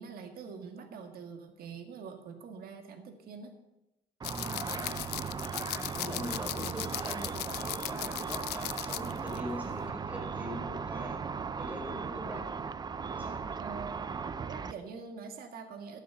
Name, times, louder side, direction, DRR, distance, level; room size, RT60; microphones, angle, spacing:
voice 1, 0.0-3.5 6.5-6.7 13.5-14.1 14.4-16.0, right 5 dB, 60° right, 5 dB, 1.7 m, -44 dB
sound 1, 4.2-9.4 9.7-9.9, left 17 dB, 75° left, 0.5 m, -38 dB
Car / Traffic noise roadway noise / Engine, 4.2-14.7, right 5 dB, 25° right, 0.5 m, -37 dB
voice 2, 4.5-5.1 5.7-11.2 11.6-12.5 13.1-13.4, equal, 10° right, 0 dB, 4.5 m, -42 dB
13.5 x 7.3 x 6.9 m, 0.96 s
cardioid pair, 110°, 17 cm